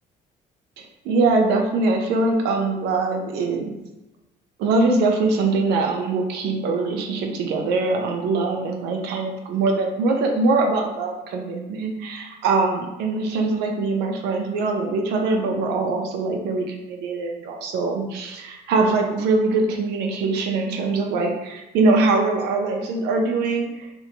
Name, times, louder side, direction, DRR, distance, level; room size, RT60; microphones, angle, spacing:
voice 1, 0.8-3.7 4.6-23.9, right 3 dB, 85° right, 2 dB, 0.5 m, -22 dB
2.9 x 2.1 x 2.7 m, 0.97 s
cardioid pair, 110°, 17 cm